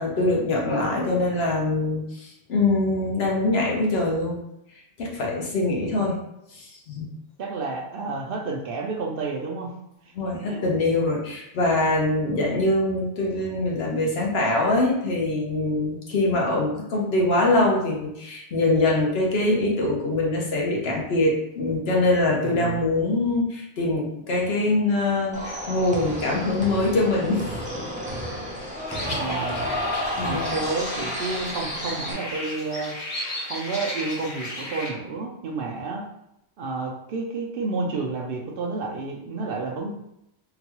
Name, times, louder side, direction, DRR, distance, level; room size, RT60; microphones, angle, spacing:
voice 1, 0.0-4.4 5.0-6.2 6.5-7.1 10.2-27.5 30.2-30.5, left 2 dB, 70° left, -2 dB, 1.1 m, -23 dB
voice 2, 7.4-9.7 10.3-10.6 22.4-22.8 29.1-29.7 30.2-33.0 33.4-36.0 36.6-39.9, right 3 dB, 65° right, 0 dB, 0.7 m, -30 dB
sound 1, 25.3-32.1, equal, 10° right, 0.5 m, -31 dB
sound 2, 28.9-34.9, left 1 dB, 40° left, 0.6 m, -34 dB
3.8 x 2.2 x 3.0 m, 0.81 s
omnidirectional pair, 1.1 m